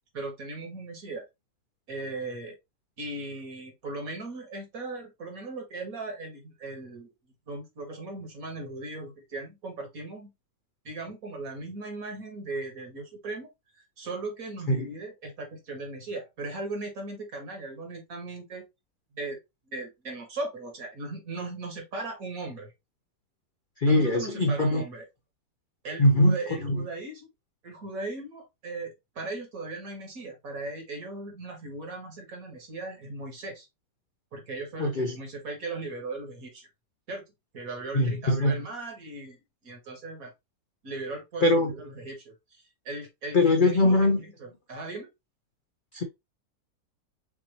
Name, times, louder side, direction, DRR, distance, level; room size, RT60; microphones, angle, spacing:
voice 1, 0.1-1.2 1.9-2.6 3.0-7.1 7.5-10.3 10.9-13.5 13.7-18.6 19.1-19.4 19.7-22.7 23.9-25.1 25.8-27.3 27.6-33.7 34.3-36.7 37.1-37.2 37.5-39.4 39.6-40.3 40.8-45.1, right 2 dB, 55° right, 2.0 m, -38 dB
voice 2, 23.8-24.8 26.0-26.8 34.8-35.2 37.9-38.6 41.4-41.7 43.3-44.2 45.9-46.0, left 1 dB, 80° left, 0.4 m, -22 dB
6.0 x 2.8 x 2.9 m
omnidirectional pair, 1.8 m